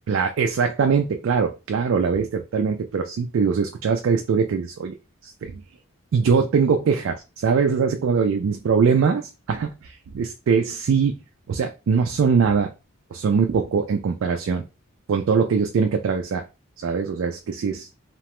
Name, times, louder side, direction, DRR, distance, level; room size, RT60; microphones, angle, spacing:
voice 1, 0.1-4.9 5.2-5.6 6.1-11.2 11.5-12.7 13.1-14.6 15.1-16.5 16.8-17.9, right 5 dB, 70° right, 5 dB, 0.3 m, -22 dB
2.9 x 2.1 x 2.9 m, 0.28 s
head